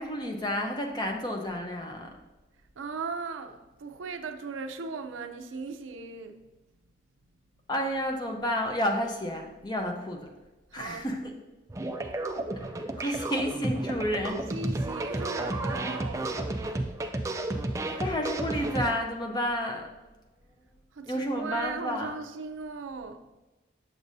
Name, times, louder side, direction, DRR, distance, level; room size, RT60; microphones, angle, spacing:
voice 1, 0.0-2.1 7.7-10.3 10.7-11.3 13.0-14.3 18.0-19.8 21.1-22.1, equal, 20° left, 0.7 m, -30 dB
voice 2, 2.8-6.4 10.7-11.1 12.0-12.1 14.3-16.4 20.9-23.3, right 4 dB, 85° right, 0.5 m, -38 dB
sound 1, 11.7-18.9, right 2 dB, 15° right, 0.3 m, -32 dB
7.3 x 6.7 x 2.7 m
head